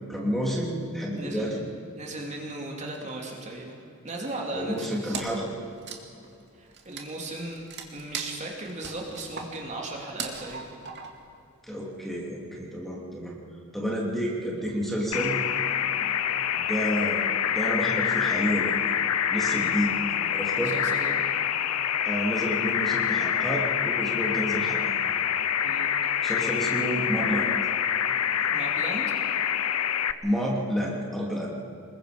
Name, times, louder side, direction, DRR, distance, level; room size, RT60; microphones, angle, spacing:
voice 1, 0.1-1.6 4.5-5.5 11.7-13.4 13.7-15.4 16.0-16.2 16.5-17.3 17.5-18.7 19.3-19.9 20.3-20.8 22.0-24.8 26.2-27.5 30.2-31.5, equal, ahead, -3 dB, 2.9 m, -29 dB
voice 2, 1.1-1.6 1.9-3.8 4.0-5.2 6.6-7.6 7.9-10.7 19.4-19.8 20.5-21.2 25.6-25.9 28.5-29.0, right 2 dB, 30° right, -1 dB, 2.8 m, -37 dB
Wood, 5.1-5.5 5.8-11.3, right 5 dB, 50° right, 2.1 m, -39 dB
sound 1, 15.1-30.1, left 9 dB, 85° left, 0.7 m, -26 dB
25.5 x 21.5 x 5.2 m, 2.7 s
head